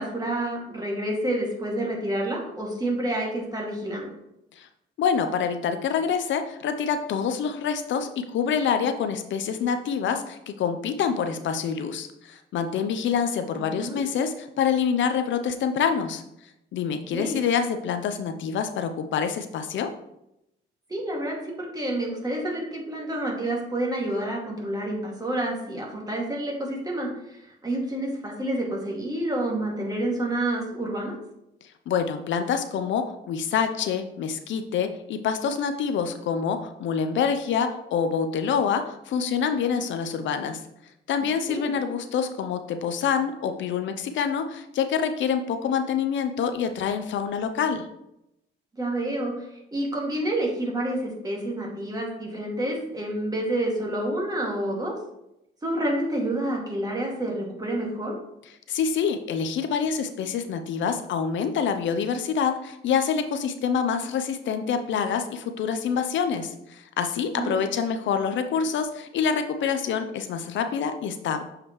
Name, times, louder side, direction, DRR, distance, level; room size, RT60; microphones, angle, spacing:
voice 1, 0.0-4.2 13.6-14.0 17.1-17.4 20.9-31.1 41.5-41.7 48.8-54.9 55.6-58.2 67.4-67.6, right 1 dB, 20° right, -2 dB, 2.2 m, -29 dB
voice 2, 5.0-16.2 16.7-19.9 31.9-40.6 41.1-47.9 58.7-71.4, left 7 dB, 70° left, 8 dB, 0.6 m, -26 dB
7.2 x 4.9 x 3.1 m, 0.83 s
cardioid pair, 90°, 20 cm